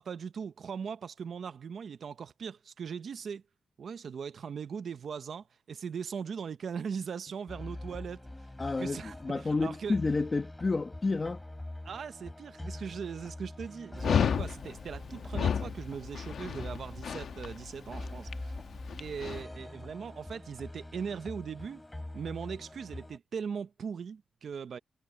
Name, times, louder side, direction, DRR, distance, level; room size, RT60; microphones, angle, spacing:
voice 1, 0.0-3.4 3.8-8.3 8.8-10.0 11.8-18.5 19.0-21.8 22.1-24.8, right 6 dB, 65° right, 0.7 m, -39 dB
sound 1, 7.5-23.2, left 1 dB, 10° left, 5.2 m, -44 dB
voice 2, 8.6-11.4, left 3 dB, 30° left, 1.0 m, -30 dB
Dog, 14.0-19.4, left 7 dB, 80° left, 1.1 m, -33 dB
wide cardioid pair, 120°, 0 cm